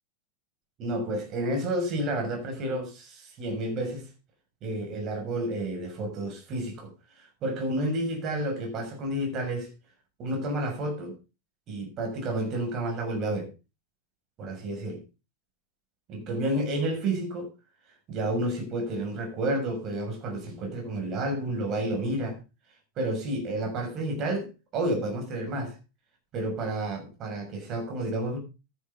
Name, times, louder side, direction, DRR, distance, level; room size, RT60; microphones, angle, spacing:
voice 1, 0.8-4.1 4.6-6.9 7.2-9.7 10.2-11.1 11.7-13.5 14.4-15.0 16.1-17.5 18.1-22.4 23.0-25.7 26.3-28.4, right 1 dB, 35° right, 6.7 m, -30 dB
13.0 x 11.0 x 3.9 m
figure-of-eight pair, 90°, 0 cm